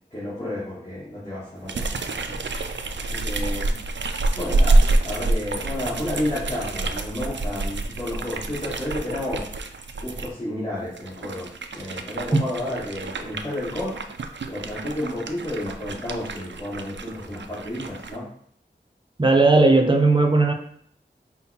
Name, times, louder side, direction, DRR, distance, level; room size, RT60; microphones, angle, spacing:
voice 1, 0.1-2.4 2.9-3.7 4.3-9.5 10.0-14.0 14.5-18.3, left 1 dB, 35° left, -10 dB, 1.8 m, -31 dB
sound 1, 1.7-10.3 10.9-18.2, right 2 dB, 85° right, 0.4 m, -27 dB
voice 2, 19.2-20.5, right 3 dB, 25° right, 3 dB, 0.7 m, -16 dB
5.6 x 2.2 x 4.2 m, 0.65 s
wide cardioid pair, 55°, 18 cm